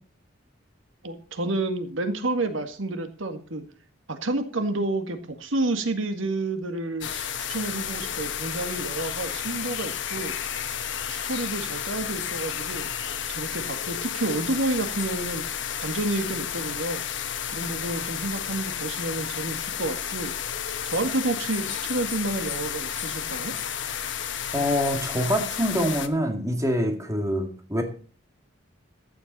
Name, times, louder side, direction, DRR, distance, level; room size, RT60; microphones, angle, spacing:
voice 1, 1.0-3.6 4.1-10.3 11.3-12.9 13.3-15.4 15.8-17.0 17.5-20.3 20.9-23.5, right 2 dB, 85° right, 8 dB, 1.8 m, -30 dB
sound 1, 7.0-26.1, left 9 dB, 70° left, 1.2 m, -32 dB
voice 2, 24.5-27.8, equal, 15° right, 5 dB, 2.3 m, -25 dB
14.5 x 10.5 x 4.2 m, 0.40 s
head